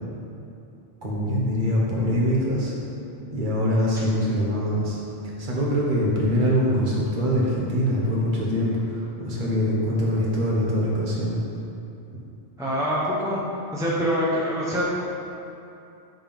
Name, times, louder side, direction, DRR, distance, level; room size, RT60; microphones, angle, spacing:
voice 1, 1.0-2.7 3.3-5.0 5.4-11.4, equal, 40° right, -5 dB, 1.4 m, -23 dB
voice 2, 12.6-13.4 13.7-14.8, equal, 5° right, -7 dB, 0.7 m, -24 dB
7.7 x 3.6 x 5.3 m, 2.8 s
omnidirectional pair, 1.3 m